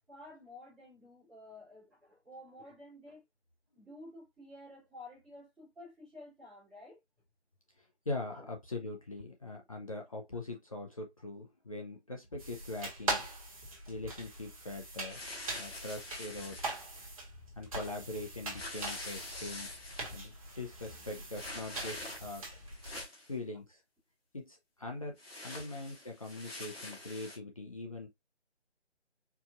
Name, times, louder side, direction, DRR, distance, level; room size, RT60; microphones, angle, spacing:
voice 1, 0.1-3.2 3.7-7.0 8.3-8.5, left 1 dB, ahead, 0.7 m, -52 dB
voice 2, 7.8-13.3 13.9-15.2 15.6-16.9 17.6-19.7 20.1-22.5 23.2-23.8 24.3-28.1, left 2 dB, 30° left, 0.6 m, -42 dB
sound 1, 12.4-23.0, right 2 dB, 30° right, 1.3 m, -42 dB
sound 2, 15.1-16.8 18.5-20.1 21.3-22.4 22.7-23.3 25.2-27.4, left 2 dB, 60° left, 1.6 m, -45 dB
4.6 x 2.4 x 2.5 m
figure-of-eight pair, 150°, 34 cm